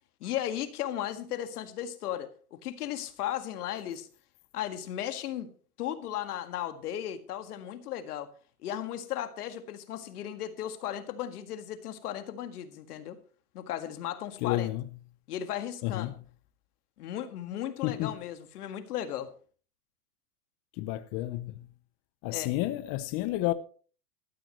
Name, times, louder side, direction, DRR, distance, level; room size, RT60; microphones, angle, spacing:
voice 1, 0.2-4.1 4.5-5.5 5.8-8.3 8.6-13.2 13.5-14.7 15.3-16.1 17.0-19.3 22.3-22.5, left 11 dB, 80° left, 1.9 m, -36 dB
voice 2, 14.4-14.8 15.8-16.1 17.8-18.1 20.8-21.6 22.2-23.5, left 16 dB, 40° left, 0.7 m, -31 dB
15.5 x 13.5 x 3.1 m
supercardioid pair, 130°, 45 cm